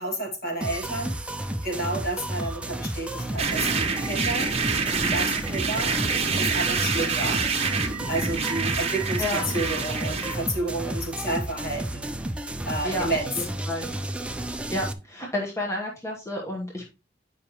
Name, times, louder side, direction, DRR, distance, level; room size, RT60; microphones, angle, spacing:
voice 1, 0.0-6.0 6.4-7.4 8.1-12.1 12.7-13.3, right 1 dB, 50° left, 1 dB, 2.1 m, -31 dB
sound 1, 0.6-14.9, right 1 dB, 5° right, 0.4 m, -32 dB
sound 2, 3.4-10.4, right 5 dB, 35° right, 1.0 m, -27 dB
voice 2, 12.8-13.2 13.7-13.9 14.7-16.9, left 1 dB, 15° left, -1 dB, 1.0 m, -30 dB
8.3 x 5.1 x 3.0 m, 0.29 s
head